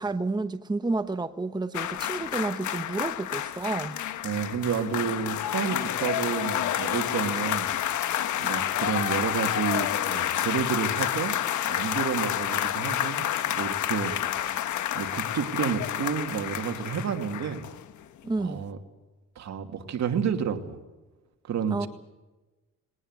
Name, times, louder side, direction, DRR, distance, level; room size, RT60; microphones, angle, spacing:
voice 1, 0.0-4.0 18.2-18.6 21.7-21.9, right 3 dB, 15° right, 1.0 m, -30 dB
sound 1, 1.7-18.0 18.3-18.5, left 11 dB, 75° left, 1.3 m, -29 dB
voice 2, 4.2-7.7 8.0-11.4 11.7-14.5 14.9-17.7 18.4-18.8 19.4-20.8 21.5-21.9, right 7 dB, 65° right, 2.7 m, -30 dB
21.0 x 19.0 x 8.1 m
cardioid pair, 90°, 30 cm